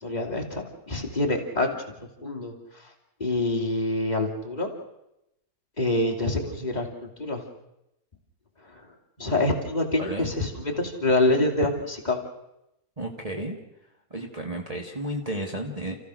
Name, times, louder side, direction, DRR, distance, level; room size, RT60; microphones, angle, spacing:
voice 1, 0.0-1.8 2.2-2.9 3.2-4.7 5.8-7.4 8.6-8.9 9.2-12.2, left 2 dB, 25° left, -2 dB, 2.9 m, -26 dB
voice 2, 10.0-10.3 13.0-13.6 14.1-16.0, right 1 dB, 20° right, 0 dB, 1.8 m, -32 dB
30.0 x 15.5 x 6.4 m, 0.87 s
omnidirectional pair, 1.8 m